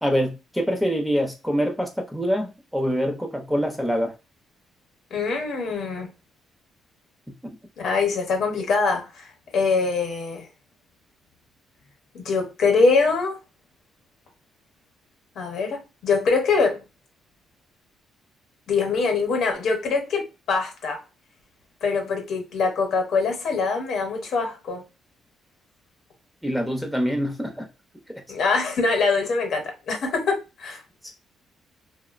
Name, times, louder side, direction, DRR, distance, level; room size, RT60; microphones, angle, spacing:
voice 1, 0.0-4.1 26.4-27.7 31.0-31.1, equal, ahead, 0.7 m, -25 dB
voice 2, 5.1-6.1 7.8-9.3 9.5-10.5 12.1-13.4 15.4-16.8 18.7-21.0 21.8-24.8 28.3-30.8, left 4 dB, 70° left, 0.8 m, -23 dB
2.5 x 2.1 x 2.4 m
cardioid pair, 90°, 0 cm